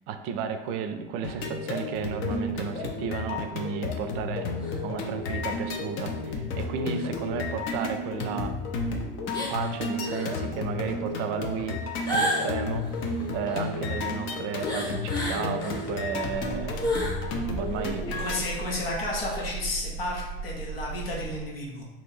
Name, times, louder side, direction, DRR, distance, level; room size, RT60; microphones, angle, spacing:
voice 1, 0.1-4.5 4.8-8.5 9.5-11.8 12.1-12.9 13.3-16.9 17.6-18.1, right 6 dB, 50° right, 8 dB, 0.4 m, -33 dB
sound 1, 1.2-18.4, left 3 dB, 40° left, 0.6 m, -32 dB
sound 2, 4.6-4.8 5.2-5.3 6.9-7.1 7.7-7.8 9.3-9.7 10.0-10.4 12.1-13.8 14.6-15.9 16.3-17.2 17.6-17.7 18.1-18.4 19.2-19.4, left 1 dB, 15° left, 0.8 m, -32 dB
sound 3, 16.3-21.3, right 4 dB, 20° right, 1.0 m, -37 dB
voice 2, 18.2-21.9, left 2 dB, 75° left, -2 dB, 0.9 m, -32 dB
2.9 x 2.6 x 4.0 m, 1.1 s
figure-of-eight pair, 75°, 29 cm